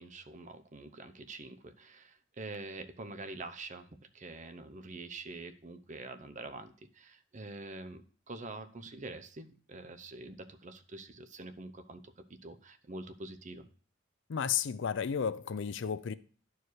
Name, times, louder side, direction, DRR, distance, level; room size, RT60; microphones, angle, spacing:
voice 1, 0.0-3.9 4.1-13.7, right 2 dB, 40° right, 0.7 m, -46 dB
voice 2, 14.3-16.1, left 7 dB, 65° left, 0.4 m, -33 dB
11.0 x 4.8 x 4.7 m
head